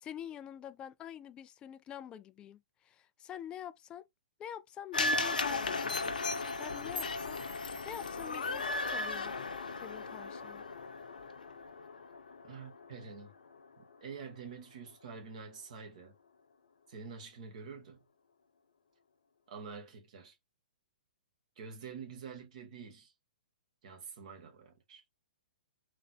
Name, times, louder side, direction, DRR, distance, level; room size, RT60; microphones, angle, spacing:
voice 1, 0.0-4.1 4.4-7.4 7.8-9.3 9.8-10.6, left 10 dB, 20° left, 0.3 m, -47 dB
sound 1, 4.9-13.2 13.5-13.6, left 3 dB, 70° left, 0.7 m, -36 dB
voice 2, 12.4-13.3 13.8-16.1 16.9-18.1 19.5-20.3 21.6-23.1 23.8-25.0, right 5 dB, 50° right, 1.5 m, -47 dB
3.9 x 3.2 x 2.7 m
figure-of-eight pair, 115°, 5 cm